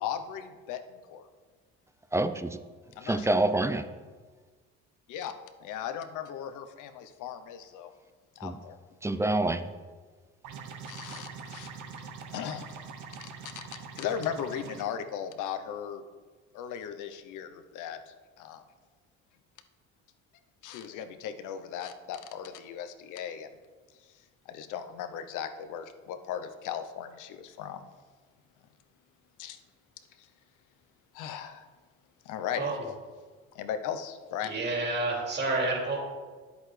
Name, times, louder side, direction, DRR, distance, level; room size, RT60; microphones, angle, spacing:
voice 1, 0.0-1.3 3.0-3.3 5.1-5.3 5.6-7.9 8.4-8.8 10.9-11.7 12.3-12.7 13.2-16.0 16.5-18.6 20.6-23.5 24.4-27.9 29.4-29.6 30.2-30.3 31.1-31.7 32.2-32.7 33.5-34.5, left 8 dB, 75° left, 9 dB, 0.8 m, -37 dB
voice 2, 2.1-2.6 3.0-3.9 8.4-8.6 9.0-9.7, right 2 dB, 10° right, 11 dB, 0.5 m, -27 dB
sound 1, 10.4-14.8, right 5 dB, 70° right, 1.1 m, -43 dB
voice 3, 34.4-36.0, right 2 dB, 35° right, -1 dB, 2.7 m, -29 dB
10.5 x 8.1 x 3.3 m, 1.4 s
cardioid pair, 90°, 31 cm